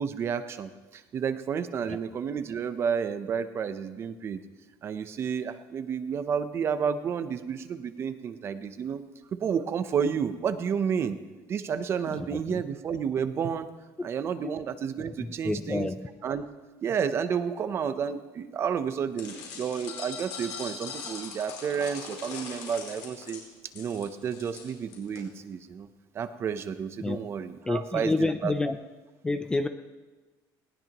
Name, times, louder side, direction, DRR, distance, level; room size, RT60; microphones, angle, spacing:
voice 1, 0.0-4.4 4.8-9.0 9.3-11.2 11.5-13.7 14.0-15.9 16.2-16.4 16.8-23.4 23.7-25.9 26.1-28.5, right 7 dB, 30° right, 11 dB, 0.7 m, -31 dB
voice 2, 12.2-12.6 14.0-14.1 15.2-16.1 27.0-27.2 27.7-28.8 29.2-29.7, left 3 dB, 10° left, 9 dB, 0.4 m, -29 dB
sound 1, 19.2-25.2, left 6 dB, 65° left, 4.7 m, -41 dB
19.5 x 18.0 x 3.0 m, 1.2 s
cardioid pair, 175°, 8 cm